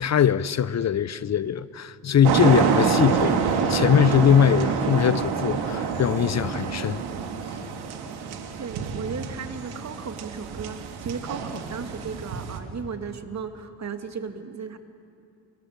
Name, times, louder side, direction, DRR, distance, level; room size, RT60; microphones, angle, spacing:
voice 1, 0.0-7.0, left 8 dB, 40° left, 0.9 m, -21 dB
sound 1, 2.2-12.6, right 6 dB, 70° right, 3.0 m, -27 dB
voice 2, 8.6-14.8, right 5 dB, 40° right, 2.7 m, -35 dB
27.5 x 24.5 x 8.4 m
hypercardioid pair, 55°, 40 cm